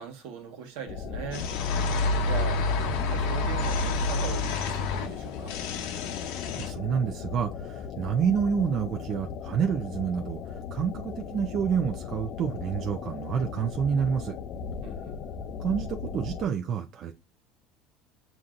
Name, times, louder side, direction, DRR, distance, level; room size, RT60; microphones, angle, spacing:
voice 1, 0.0-5.6 14.8-15.2, right 7 dB, 75° right, 1.3 m, -40 dB
sound 1, 0.9-16.5, left 6 dB, 50° left, 0.4 m, -38 dB
sound 2, 1.3-6.7, left 3 dB, 75° left, 0.7 m, -28 dB
voice 2, 6.6-14.4 15.6-17.1, right 7 dB, 40° right, 0.5 m, -28 dB
7.1 x 2.6 x 2.5 m
supercardioid pair, 135°, 0 cm